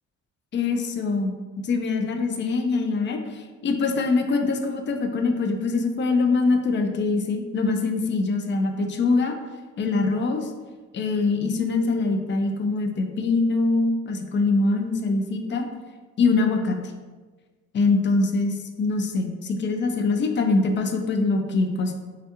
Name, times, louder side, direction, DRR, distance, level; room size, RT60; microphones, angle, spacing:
voice 1, 0.5-1.3 1.6-9.3 9.8-10.5 10.9-15.7 16.2-16.8 17.7-21.9, left 3 dB, 40° left, 4 dB, 0.4 m, -23 dB
3.5 x 2.2 x 2.8 m, 1.3 s
cardioid pair, 90°, 30 cm